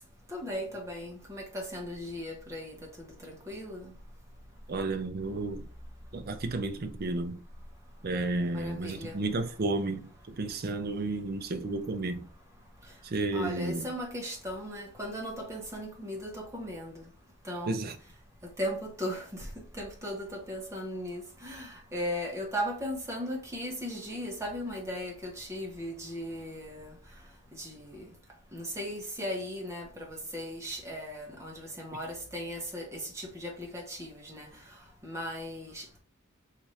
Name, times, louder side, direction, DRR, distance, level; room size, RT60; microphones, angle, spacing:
voice 1, 0.3-3.9 8.5-9.2 13.3-17.0 17.4-17.8 18.6-19.5 19.7-26.9 27.5-28.1 28.5-34.5 35.0-36.0, equal, 15° right, 0.8 m, -37 dB
voice 2, 4.7-5.7 6.1-7.4 8.0-12.3 13.0-13.9 17.7-17.9, right 2 dB, 45° right, 0.4 m, -32 dB
3.1 x 2.5 x 4.1 m
head